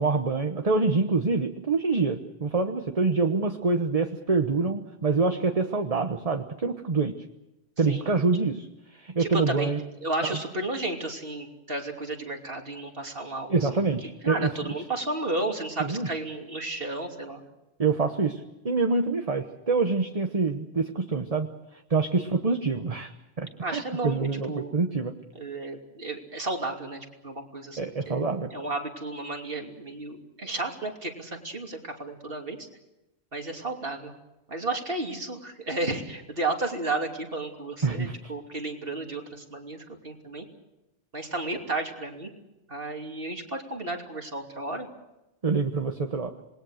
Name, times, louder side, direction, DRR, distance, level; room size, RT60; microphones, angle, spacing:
voice 1, 0.0-7.2 7.8-8.7 8.9-9.8 10.2-10.4 13.5-14.7 15.8-16.1 17.8-21.5 21.9-23.1 23.4-25.1 27.8-28.5 37.8-38.3 45.4-46.3, right 4 dB, 35° right, 6 dB, 1.2 m, -26 dB
voice 2, 9.2-9.7 10.0-13.7 14.2-17.4 22.2-22.3 23.6-24.7 25.3-28.2 28.5-32.6 33.3-34.1 34.5-40.4 41.1-42.3 42.7-44.9, right 2 dB, 60° right, 3 dB, 3.2 m, -33 dB
27.0 x 21.0 x 6.5 m, 0.96 s
omnidirectional pair, 1.1 m